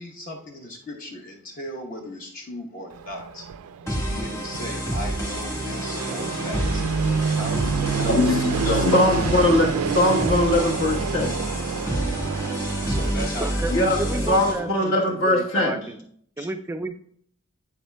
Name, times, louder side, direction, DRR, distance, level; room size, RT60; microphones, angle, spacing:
voice 1, 0.0-3.5 3.9-6.8 7.3-9.1 12.8-14.9 16.4-16.5, equal, 40° left, 1 dB, 0.9 m, -37 dB
Fixed-wing aircraft airplane, 2.9-13.1, right 7 dB, 85° right, 0.4 m, -29 dB
sound 1, 3.9-14.5, right 1 dB, 15° left, 1.5 m, -28 dB
voice 2, 8.0-11.4 13.7-14.0 14.3-15.8, left 1 dB, 55° left, -1 dB, 1.3 m, -21 dB
voice 3, 13.4-16.0 16.4-16.9, right 2 dB, 10° right, 8 dB, 0.3 m, -32 dB
8.0 x 7.1 x 2.2 m, 0.64 s
head